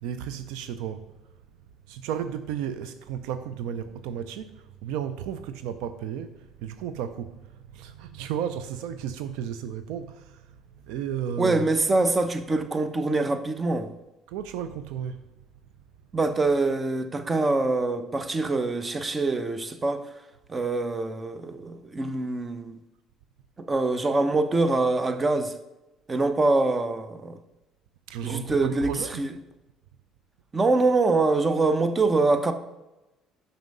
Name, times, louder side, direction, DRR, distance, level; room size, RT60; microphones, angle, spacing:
voice 1, 0.0-1.0 1.9-7.3 7.7-10.5 10.9-11.6 14.3-15.2 28.1-29.2, right 9 dB, 80° right, 0.4 m, -33 dB
voice 2, 11.4-13.9 16.1-20.1 20.5-22.8 23.6-25.5 26.1-27.4 28.2-29.3 30.5-32.5, right 3 dB, 25° right, 0.7 m, -24 dB
6.0 x 5.6 x 5.3 m
supercardioid pair, 75°, 0 cm